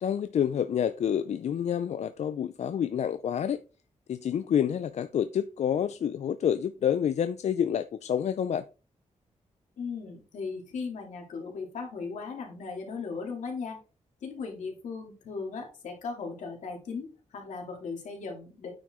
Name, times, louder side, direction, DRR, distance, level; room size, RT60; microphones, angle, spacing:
voice 1, 0.0-3.6 4.1-8.6, left 9 dB, 65° left, 0.4 m, -28 dB
voice 2, 9.8-13.8 14.2-17.1 17.3-18.7, left 4 dB, 85° left, 2.5 m, -37 dB
9.2 x 4.8 x 3.7 m
cardioid pair, 95°, 12 cm